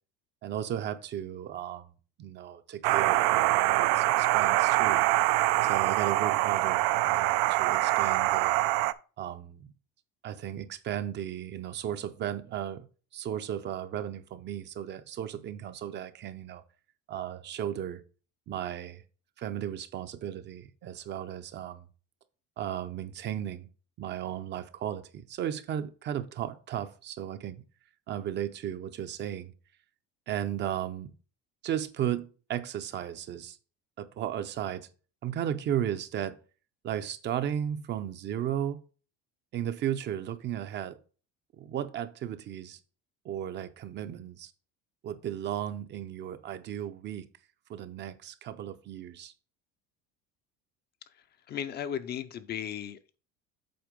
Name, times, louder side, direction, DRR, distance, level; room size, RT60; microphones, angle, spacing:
voice 1, 0.4-1.9 2.2-5.0 5.6-8.7 9.2-9.7 10.2-12.9 13.1-16.6 17.1-18.0 18.5-19.0 19.4-21.9 22.6-23.7 24.0-27.6 28.1-29.5 30.3-31.1 31.6-33.6 34.0-34.9 35.2-36.4 36.8-38.8 39.5-41.0 41.6-42.8 43.2-44.5 45.0-47.3 47.7-49.3, right 10 dB, 35° right, 0.6 m, -35 dB
sound 1, 2.8-8.9, right 17 dB, 80° right, 0.5 m, -24 dB
voice 2, 51.5-53.1, left 9 dB, 35° left, 0.5 m, -36 dB
7.8 x 4.3 x 5.1 m
cardioid pair, 155°, 30 cm